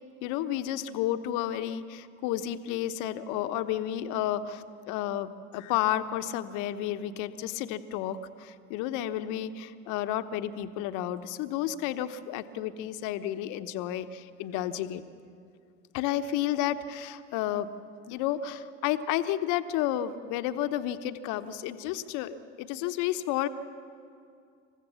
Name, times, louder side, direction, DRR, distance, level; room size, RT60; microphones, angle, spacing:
voice 1, 0.2-15.0 15.9-17.7 18.1-23.5, left 12 dB, 65° left, 11 dB, 1.1 m, -31 dB
27.5 x 15.0 x 7.1 m, 2.5 s
hypercardioid pair, 65°, 33 cm